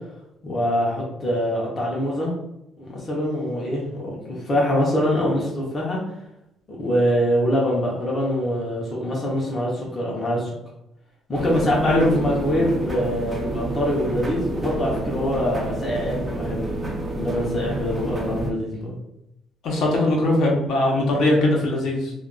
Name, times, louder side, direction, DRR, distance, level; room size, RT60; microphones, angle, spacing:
voice 1, 0.4-2.3 2.8-6.0 6.7-10.5 11.3-16.6 17.2-19.0, equal, 25° left, -4 dB, 0.6 m, -24 dB
sound 1, 11.3-18.5, right 2 dB, 15° right, 0.4 m, -29 dB
voice 2, 19.6-22.1, left 1 dB, 60° left, -2 dB, 0.8 m, -20 dB
2.3 x 2.2 x 3.7 m, 0.86 s
cardioid pair, 170°, 0 cm